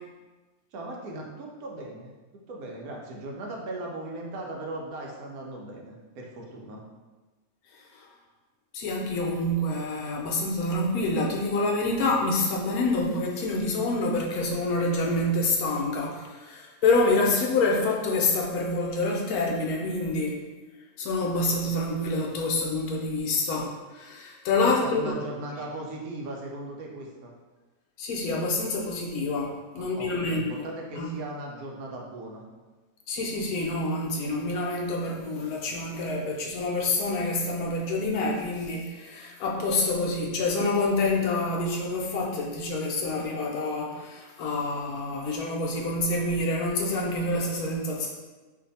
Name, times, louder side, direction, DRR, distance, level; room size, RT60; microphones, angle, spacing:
voice 1, 0.7-6.8 24.6-27.3 29.8-32.4, right 2 dB, 75° right, -1 dB, 1.0 m, -38 dB
voice 2, 8.7-20.4 21.0-25.0 28.0-30.7 30.9-31.1 33.1-48.1, left 2 dB, 75° left, -1 dB, 1.0 m, -27 dB
2.6 x 2.5 x 4.0 m, 1.2 s
omnidirectional pair, 1.6 m